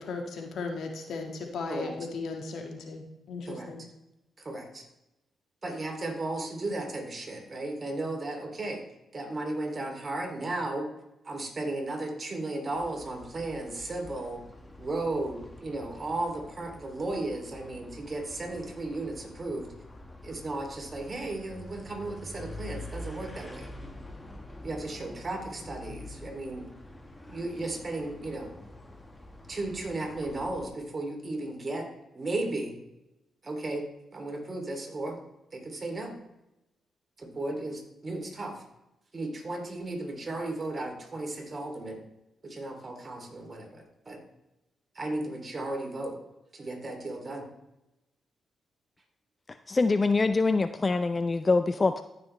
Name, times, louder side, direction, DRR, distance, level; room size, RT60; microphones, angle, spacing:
voice 1, 0.0-3.8, left 4 dB, 70° left, 3 dB, 1.6 m, -36 dB
voice 2, 4.4-4.9 5.6-8.8 9.1-10.9 11.2-14.4 14.8-19.7 20.2-23.7 24.6-26.7 27.3-28.5 29.5-31.9 32.1-32.8 33.4-35.2 35.5-36.2 37.2-38.6 39.1-42.0 42.4-44.2 44.9-46.2 46.5-47.5, right 2 dB, 40° right, 2 dB, 2.6 m, -35 dB
sound 1, 12.7-30.7, left 1 dB, 20° left, 1.5 m, -46 dB
voice 3, 49.7-52.0, left 3 dB, 35° left, 11 dB, 0.5 m, -24 dB
14.0 x 6.2 x 3.2 m, 0.92 s
supercardioid pair, 50°, 0 cm